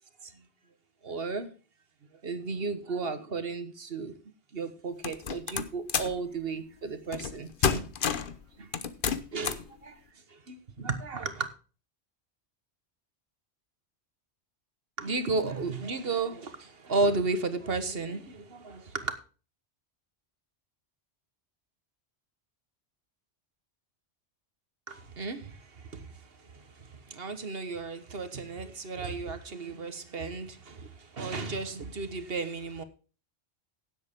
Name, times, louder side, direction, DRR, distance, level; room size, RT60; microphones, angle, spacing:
voice 1, 1.0-1.5 2.2-4.1 4.5-7.9 8.6-8.7 9.3-10.0 10.3-11.5 15.0-19.2 24.9-32.8, right 3 dB, 60° right, 1.5 m, -34 dB
sound 1, 5.0-6.2 7.1-7.4 7.6-8.3 8.7-9.7, left 6 dB, 55° left, 1.0 m, -29 dB
16.5 x 8.0 x 3.7 m
omnidirectional pair, 1.1 m